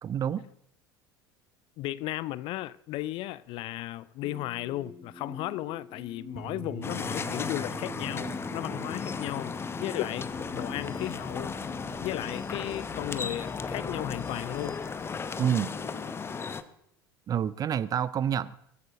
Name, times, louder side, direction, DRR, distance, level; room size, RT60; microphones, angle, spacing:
voice 1, 0.0-0.4 15.4-15.7 17.3-18.6, right 9 dB, 30° right, 0.5 m, -28 dB
voice 2, 1.8-9.5 9.8-10.3 10.5-11.5 12.0-14.8, left 16 dB, 45° left, 0.4 m, -35 dB
sound 1, 4.2-12.4, right 3 dB, 5° right, 1.1 m, -45 dB
sound 2, 6.8-16.6, left 5 dB, 20° left, 0.8 m, -35 dB
sound 3, 10.2-16.1, equal, 70° left, 5.0 m, -49 dB
21.0 x 14.0 x 2.7 m
figure-of-eight pair, 70°, 12 cm